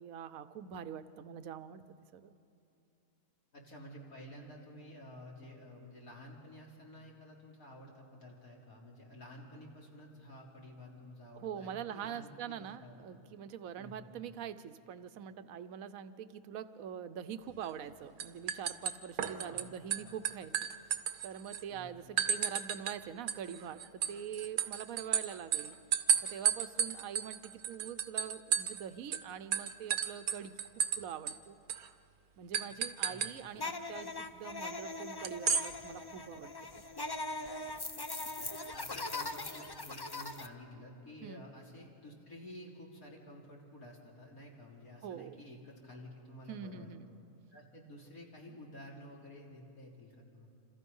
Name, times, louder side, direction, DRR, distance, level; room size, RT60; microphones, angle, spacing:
voice 1, 0.0-1.8 2.1-2.3 11.4-20.7 21.2-25.8 26.2-30.6 31.0-31.6 32.4-36.8 41.2-41.5 45.0-45.4 46.5-47.1, right 8 dB, 70° right, 11 dB, 1.2 m, -44 dB
voice 2, 3.5-12.9 13.8-14.1 19.3-20.2 21.7-21.9 33.1-33.3 38.4-46.9 47.5-50.5, left 1 dB, 70° left, -2 dB, 3.8 m, -52 dB
sound 1, 17.6-17.9 18.2-19.6 19.9-21.6 22.2-23.0 23.3-28.8 29.1-29.2 29.5-31.0 31.3-31.4 31.7-31.9 32.5-33.3 35.2-35.7, right 8 dB, 85° right, 1.4 m, -33 dB
sound 2, 33.6-40.5, left 2 dB, 30° left, 0.4 m, -41 dB
27.0 x 27.0 x 5.5 m, 2.7 s
omnidirectional pair, 1.6 m